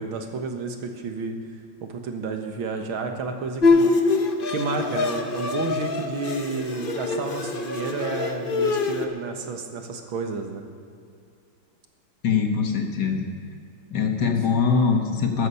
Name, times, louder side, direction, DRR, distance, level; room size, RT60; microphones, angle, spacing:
voice 1, 0.0-1.4 1.8-3.9 4.5-10.6, right 4 dB, 80° right, 5 dB, 2.1 m, -31 dB
Bowed string instrument, 3.6-9.1, left 3 dB, 40° left, 0.7 m, -24 dB
voice 2, 12.2-13.3 13.9-15.5, left 5 dB, 60° left, 3 dB, 1.9 m, -22 dB
13.5 x 13.5 x 5.6 m, 2.4 s
omnidirectional pair, 2.2 m